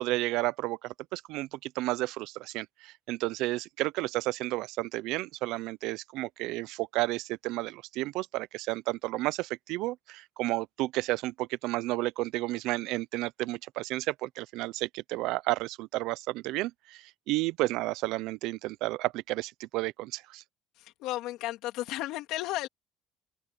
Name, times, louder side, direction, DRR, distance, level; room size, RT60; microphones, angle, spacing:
voice 1, 0.0-20.4, right 19 dB, 75° right, 0.5 m, -32 dB
voice 2, 20.8-22.7, left 16 dB, 75° left, 3.0 m, -34 dB
open air
cardioid pair, 165°, 0 cm